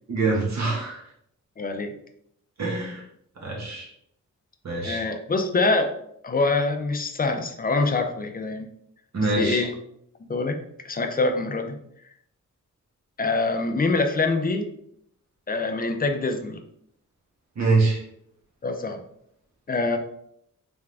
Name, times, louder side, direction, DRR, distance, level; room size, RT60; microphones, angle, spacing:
voice 1, 0.1-1.0 2.6-3.0 3.4-3.9 4.6-5.0 9.1-9.7 17.6-18.0, right 3 dB, 60° right, -2 dB, 1.5 m, -24 dB
voice 2, 1.6-1.9 4.8-6.0 6.2-8.7 9.4-9.7 10.3-11.8 13.2-14.7 15.5-16.6 18.6-19.0 19.7-20.0, left 3 dB, 30° left, 6 dB, 0.5 m, -25 dB
3.6 x 3.5 x 3.4 m, 0.71 s
wide cardioid pair, 125°, 31 cm